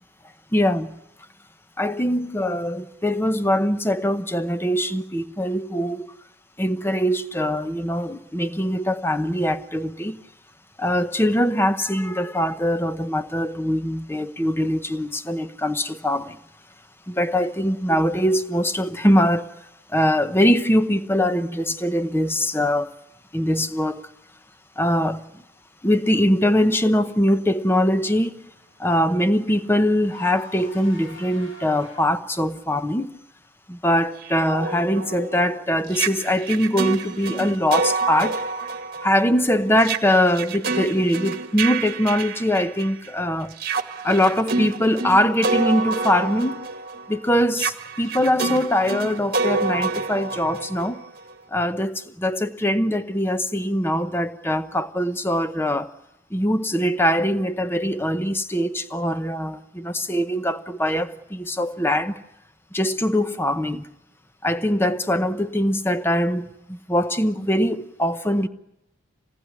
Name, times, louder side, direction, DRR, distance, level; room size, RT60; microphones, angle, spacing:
voice 1, 0.5-1.0 1.8-6.1 6.6-10.2 10.8-16.4 17.1-19.5 19.9-22.9 23.3-24.1 24.8-25.4 25.8-28.5 28.8-33.2 33.7-38.5 39.0-43.6 44.0-46.7 47.1-51.0 51.5-55.9 56.3-62.2 62.7-63.9 64.4-68.5, equal, 10° left, 0.8 m, -22 dB
Car / Engine, 27.4-32.5, left 1 dB, 70° left, 6.8 m, -46 dB
sound 1, 34.2-43.1 43.5-51.3, right 4 dB, 45° right, 1.5 m, -28 dB
27.0 x 18.5 x 9.6 m
head